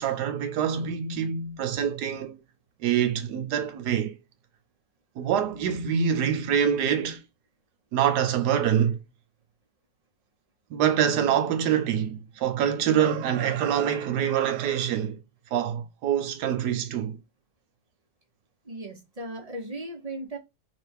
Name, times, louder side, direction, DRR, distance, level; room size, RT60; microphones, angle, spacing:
voice 1, 0.0-2.4 2.8-4.1 5.2-7.2 7.9-9.0 10.7-15.2 15.5-17.2, right 9 dB, 80° right, 1.2 m, -25 dB
voice 2, 18.6-20.4, right 1 dB, 30° right, 0.8 m, -37 dB
3.4 x 3.2 x 4.4 m
omnidirectional pair, 1.7 m